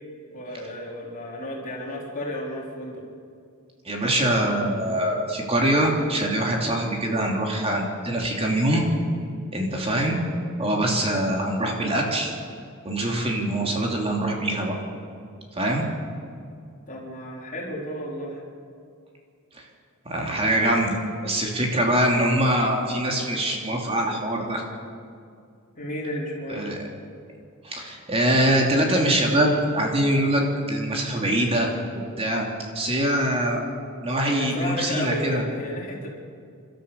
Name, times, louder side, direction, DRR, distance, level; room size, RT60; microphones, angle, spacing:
voice 1, 0.3-3.0 16.9-18.4 25.8-26.6 34.4-36.1, left 1 dB, 40° left, -3 dB, 3.8 m, -32 dB
voice 2, 3.8-8.9 9.5-10.2 10.6-12.3 12.8-14.7 15.6-15.8 19.5-19.6 20.0-21.0 21.2-24.6 26.5-26.8 27.6-30.4 30.7-31.7 32.2-32.5 32.7-33.6 34.0-35.4, right 1 dB, 25° right, 0 dB, 2.9 m, -23 dB
29.0 x 13.0 x 7.0 m, 2.3 s
head